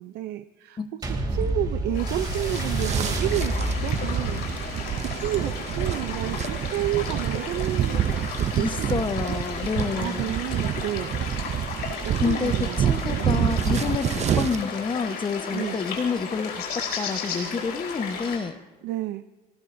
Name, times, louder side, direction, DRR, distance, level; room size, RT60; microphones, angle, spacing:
voice 1, 0.0-8.1 8.5-9.4 10.0-11.1 12.0-12.8 13.1-13.5 15.5-15.8 18.8-19.2, right 14 dB, 85° right, 10 dB, 0.6 m, -31 dB
sound 1, 1.0-9.8 10.6-10.7, right 2 dB, 25° right, 2.9 m, -31 dB
sound 2, 1.9-18.4, left 5 dB, 75° left, 4.2 m, -34 dB
sound 3, 2.2-14.6, right 9 dB, 40° right, 0.5 m, -28 dB
voice 2, 8.6-10.3 12.2-18.6, left 5 dB, 30° left, 10 dB, 1.0 m, -29 dB
25.5 x 18.5 x 2.7 m, 1.2 s
cardioid pair, 110°, 17 cm